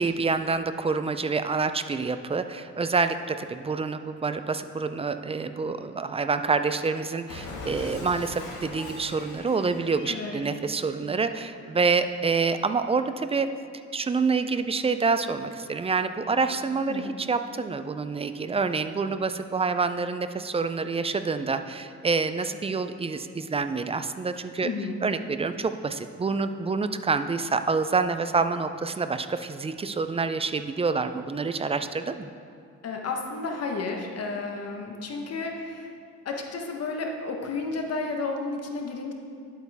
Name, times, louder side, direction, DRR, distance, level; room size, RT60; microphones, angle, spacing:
voice 1, 0.0-13.5 13.9-24.7 25.0-32.3, right 4 dB, 20° right, 10 dB, 0.4 m, -27 dB
Cat, 7.3-10.6, left 2 dB, 80° left, 1.8 m, -40 dB
voice 2, 10.1-10.4 16.8-17.1 24.6-25.0 32.8-35.9 36.2-39.1, left 3 dB, 55° left, 2 dB, 1.2 m, -32 dB
10.5 x 8.2 x 3.5 m, 2.3 s
cardioid pair, 90°, 30 cm